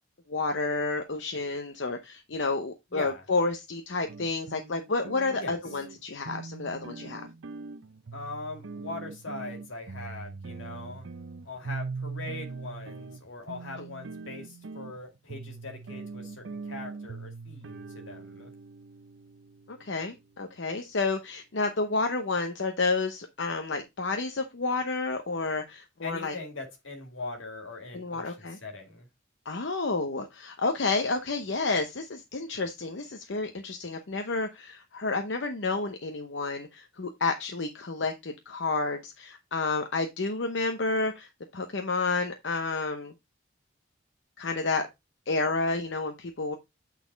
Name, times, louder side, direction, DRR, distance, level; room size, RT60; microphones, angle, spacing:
voice 1, 0.3-7.3 13.8-13.9 19.7-26.3 27.9-28.6 29.5-43.1 44.4-44.9 45.3-46.5, left 3 dB, 65° left, 0.8 m, -30 dB
voice 2, 2.9-3.2 5.4-5.8 8.1-11.1 11.4-18.5 26.0-29.1, left 2 dB, 85° left, 2.1 m, -41 dB
sound 1, 4.1-20.3, right 4 dB, 80° right, 0.6 m, -42 dB
8.4 x 4.1 x 3.9 m
head